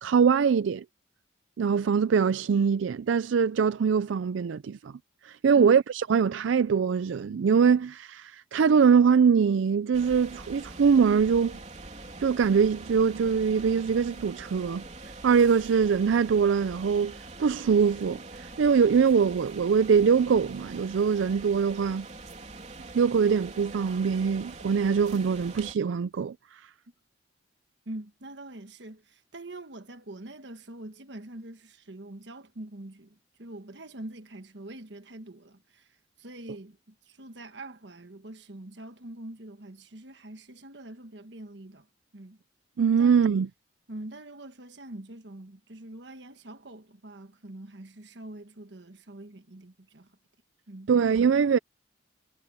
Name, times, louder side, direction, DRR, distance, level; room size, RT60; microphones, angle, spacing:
voice 1, 0.0-0.8 1.6-4.9 5.2-11.6 12.2-14.8 15.2-22.1 22.9-26.7 42.8-43.5 50.9-51.6, right 6 dB, 85° right, 0.4 m, -23 dB
sound 1, 9.9-25.7, right 2 dB, 35° right, 3.5 m, -44 dB
voice 2, 27.8-41.9 42.1-42.4 43.0-43.4 43.9-50.1 50.7-50.9, right 1 dB, 65° right, 1.4 m, -44 dB
head